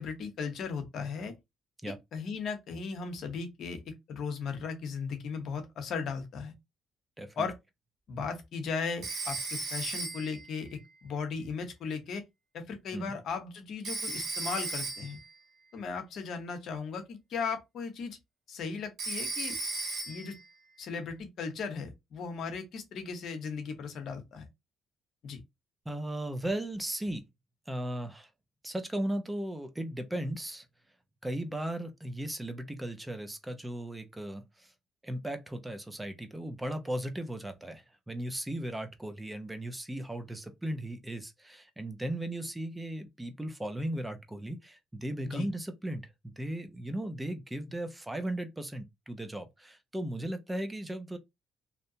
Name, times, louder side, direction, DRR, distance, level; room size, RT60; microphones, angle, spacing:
voice 1, 0.0-1.3 2.1-6.5 7.4-7.5 8.1-12.2 12.5-15.2 15.7-18.2 18.5-19.5 20.1-20.4 20.8-24.5 25.2-25.4 45.2-45.5, left 5 dB, 65° left, 0.8 m, -37 dB
Telephone, 9.0-10.4 13.8-15.2 19.0-20.4, right 3 dB, 65° right, 0.8 m, -35 dB
voice 2, 25.9-27.2 27.7-28.3 28.6-30.7 31.2-34.7 35.0-51.2, right 1 dB, 10° right, 0.5 m, -36 dB
2.7 x 2.1 x 2.6 m
cardioid pair, 85°, 0 cm